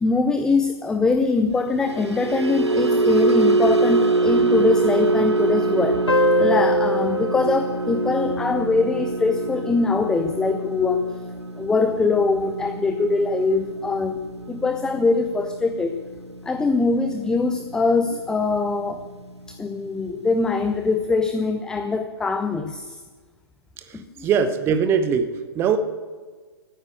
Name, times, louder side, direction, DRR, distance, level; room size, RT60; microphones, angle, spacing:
voice 1, 0.0-11.1 11.6-14.2 14.5-16.0 16.4-19.0 19.5-23.0 23.9-24.3, left 3 dB, 5° left, 8 dB, 0.5 m, -22 dB
sound 1, 1.7-18.1 18.4-18.7 19.1-19.3, right 3 dB, 80° right, 1.1 m, -25 dB
sound 2, 6.1-9.2, equal, 85° left, 0.6 m, -24 dB
voice 2, 23.9-25.8, right 7 dB, 15° right, 10 dB, 1.0 m, -22 dB
15.0 x 9.1 x 8.2 m, 1.4 s
figure-of-eight pair, 125°, 14 cm